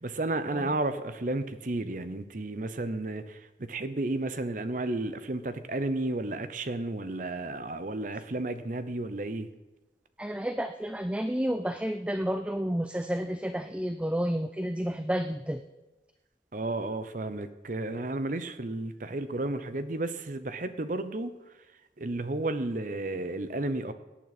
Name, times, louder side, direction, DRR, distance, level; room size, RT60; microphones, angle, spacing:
voice 1, 0.0-9.5 16.5-21.3 22.0-23.9, right 2 dB, 45° right, 11 dB, 0.8 m, -32 dB
voice 2, 10.2-15.6, equal, 5° right, 9 dB, 0.4 m, -30 dB
17.5 x 9.2 x 4.2 m, 1.1 s
head